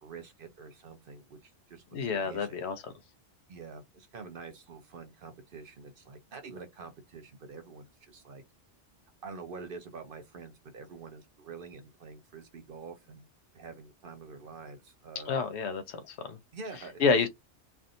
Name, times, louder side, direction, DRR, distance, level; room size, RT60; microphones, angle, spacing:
voice 1, 0.0-2.7 3.5-8.4 9.2-13.3 13.5-15.4 16.5-17.3, right 4 dB, 55° right, 0.8 m, -46 dB
voice 2, 1.9-2.8 15.3-16.4 17.0-17.3, left 5 dB, 75° left, 0.9 m, -29 dB
3.3 x 2.6 x 2.5 m
omnidirectional pair, 1.2 m